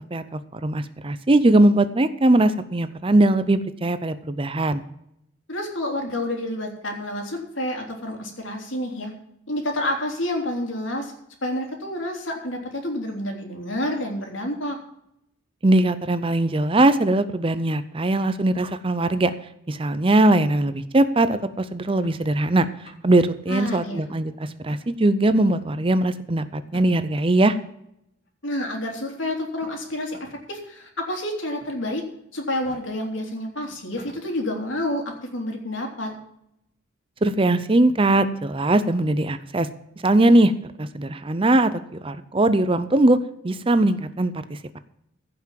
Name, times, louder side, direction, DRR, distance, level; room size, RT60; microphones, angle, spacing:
voice 1, 0.1-4.8 15.6-19.3 19.7-22.7 23.0-27.6 37.2-39.7 40.0-40.5 40.8-43.2 43.4-44.8, right 2 dB, 25° right, 13 dB, 0.6 m, -20 dB
voice 2, 5.5-9.1 9.5-11.1 11.4-14.8 23.5-24.1 28.4-30.2 30.5-32.0 32.3-36.1, left 1 dB, 70° left, 2 dB, 3.3 m, -29 dB
sound 1, 21.3-22.2 22.7-23.3 23.7-24.3 24.7-24.8 25.3-25.6 26.6-27.2 28.3-28.4 29.4-30.4 30.8-30.9 31.6-32.0 32.5-32.8 33.4-33.5 33.7-34.2, left 1 dB, 50° left, 2.3 m, -48 dB
15.5 x 5.9 x 7.5 m, 0.77 s
head